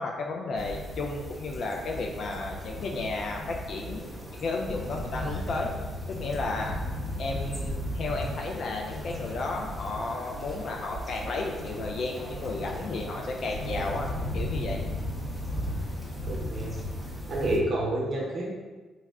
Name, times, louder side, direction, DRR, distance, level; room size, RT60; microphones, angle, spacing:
voice 1, 0.0-4.0 4.3-5.7 6.1-6.7 7.2-14.8, left 3 dB, 60° left, 1 dB, 0.4 m, -33 dB
sound 1, 0.6-17.6, equal, 5° left, 0.7 m, -36 dB
voice 2, 16.2-16.7 17.3-18.5, right 1 dB, 55° right, -3 dB, 0.7 m, -29 dB
3.4 x 2.0 x 3.5 m, 1.3 s
cardioid pair, 90°, 0 cm